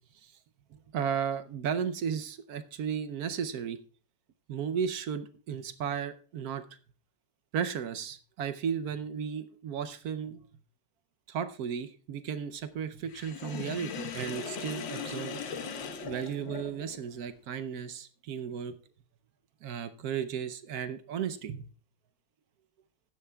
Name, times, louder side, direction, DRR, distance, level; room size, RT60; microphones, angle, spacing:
voice 1, 0.9-3.8 4.5-6.6 7.5-10.4 11.3-15.4 16.0-18.8 19.6-21.7, right 7 dB, 65° right, 12 dB, 1.0 m, -34 dB
Sink (filling or washing), 13.1-17.0, left 6 dB, 90° left, 1.8 m, -39 dB
15.5 x 10.5 x 2.2 m, 0.38 s
omnidirectional pair, 2.0 m